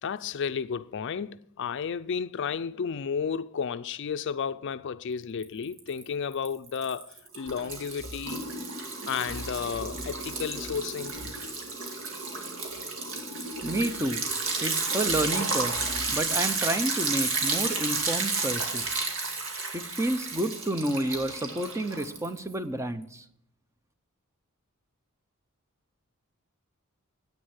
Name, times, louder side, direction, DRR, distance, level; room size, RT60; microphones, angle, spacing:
voice 1, 0.0-8.5 9.1-11.1, left 6 dB, 55° left, 0.4 m, -32 dB
Liquid, 5.4-6.0 6.3-22.5, right 3 dB, 65° right, 2.3 m, -32 dB
voice 2, 13.6-14.2 14.6-19.0 19.7-23.2, right 1 dB, 15° right, 0.7 m, -30 dB
9.9 x 8.7 x 8.0 m
head